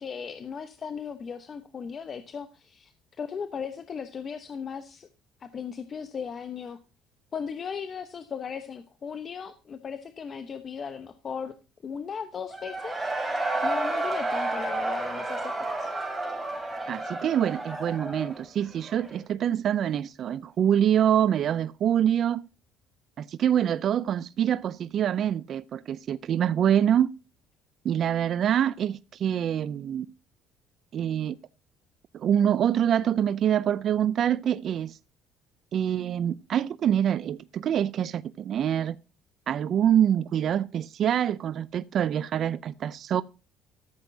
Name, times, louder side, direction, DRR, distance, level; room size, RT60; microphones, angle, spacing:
voice 1, 0.0-2.9 3.2-5.1 5.4-6.8 7.3-11.5 11.8-15.9, left 6 dB, 40° left, 0.9 m, -37 dB
Cheering / Crowd, 12.5-19.2, right 2 dB, 10° right, 4.8 m, -31 dB
voice 2, 16.9-22.4 23.2-27.1 27.8-30.1 30.9-31.4 32.1-35.0 35.7-39.0 39.5-43.2, right 9 dB, 55° right, 0.4 m, -25 dB
14.0 x 7.9 x 2.7 m
cardioid pair, 100°, 0 cm